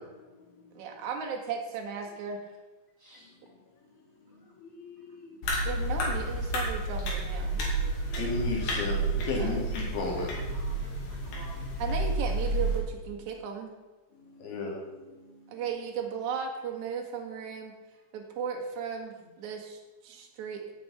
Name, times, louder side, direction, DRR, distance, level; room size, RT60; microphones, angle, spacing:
voice 1, 0.7-2.4 5.6-7.6 9.4-9.6 11.8-13.7 15.5-17.7 18.1-20.7, right 6 dB, 55° right, 2 dB, 2.4 m, -36 dB
voice 2, 4.3-5.4 7.6-10.4 14.2-15.5, left 3 dB, 80° left, -1 dB, 5.3 m, -35 dB
sound 1, 5.4-12.8, right 1 dB, 60° left, 4.4 m, -30 dB
voice 3, 7.5-7.9 9.9-10.0 10.5-11.7, equal, 5° left, -4 dB, 1.7 m, -51 dB
16.0 x 7.6 x 5.8 m, 1.2 s
omnidirectional pair, 5.3 m